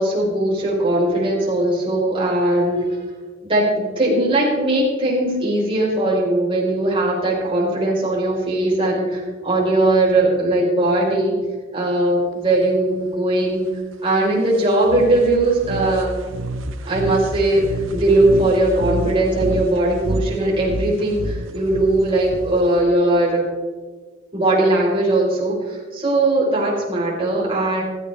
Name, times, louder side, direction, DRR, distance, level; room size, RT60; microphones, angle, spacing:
voice 1, 0.0-3.0 3.4-11.3 11.7-13.8 14.0-16.1 16.8-23.4 24.3-27.8, right 1 dB, 30° right, -4 dB, 4.8 m, -19 dB
sound 1, 14.8-22.8, right 1 dB, 85° right, 0.9 m, -29 dB
16.5 x 13.5 x 3.6 m, 1.4 s
head